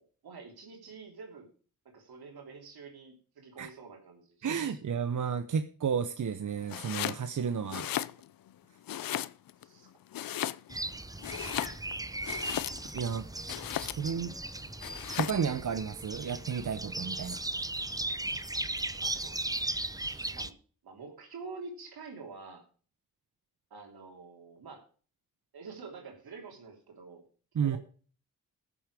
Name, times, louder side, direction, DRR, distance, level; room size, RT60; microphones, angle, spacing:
voice 1, 0.0-1.5 1.8-4.8 8.9-9.2 9.6-9.9 10.4-10.5 11.4-11.7 13.7-14.0 19.0-19.4 19.9-20.5 20.8-22.6 23.7-24.8 25.5-27.3 27.6-27.8, right 4 dB, 80° right, 2 dB, 3.1 m, -48 dB
voice 2, 4.4-7.9 12.9-13.3 14.0-14.4 15.2-17.4 27.5-27.8, right 7 dB, 55° right, 10 dB, 0.9 m, -32 dB
Domestic sounds home sounds, 6.7-7.2 7.6-8.5 8.9-9.6 10.1-10.9 11.2-13.0 13.5-14.2 14.8-15.5, left 12 dB, 65° left, 0.6 m, -36 dB
sound 1, 10.7-20.5, right 2 dB, 10° right, 0.7 m, -37 dB
14.5 x 7.2 x 4.9 m, 0.41 s
supercardioid pair, 40°, 37 cm